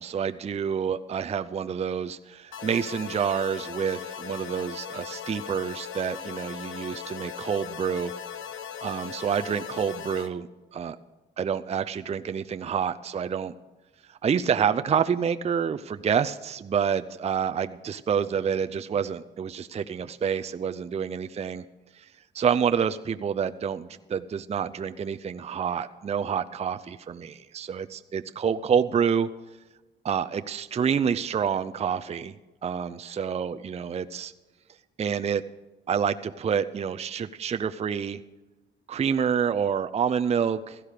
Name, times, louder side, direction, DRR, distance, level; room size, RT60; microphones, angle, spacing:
voice 1, 0.0-8.1 8.8-11.0 11.4-13.5 14.1-21.6 21.9-22.1 22.3-29.3 30.0-34.3 35.0-35.4 35.9-38.2 38.9-40.8, right 7 dB, 30° right, 10 dB, 0.5 m, -28 dB
sound 1, 2.5-10.3, left 8 dB, 85° left, 1.1 m, -38 dB
16.5 x 13.5 x 5.0 m, 1.2 s
cardioid pair, 90°, 20 cm